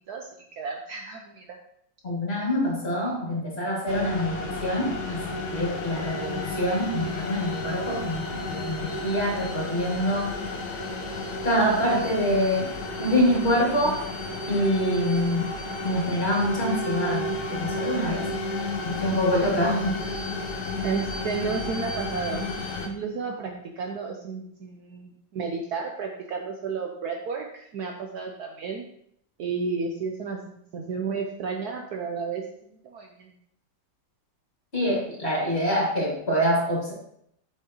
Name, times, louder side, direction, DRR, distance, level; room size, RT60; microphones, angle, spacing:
voice 1, 0.6-1.6 20.8-22.5 22.8-28.8 29.4-33.3, right 5 dB, 65° right, 2 dB, 1.1 m, -32 dB
voice 2, 2.0-10.3 11.4-12.7 13.0-14.0 14.5-15.5 15.8-18.2 18.8-20.0 34.7-36.9, equal, 30° left, -5 dB, 3.0 m, -25 dB
sound 1, 3.9-22.9, left 2 dB, 60° left, 1.4 m, -32 dB
8.3 x 6.4 x 3.0 m, 0.71 s
omnidirectional pair, 2.1 m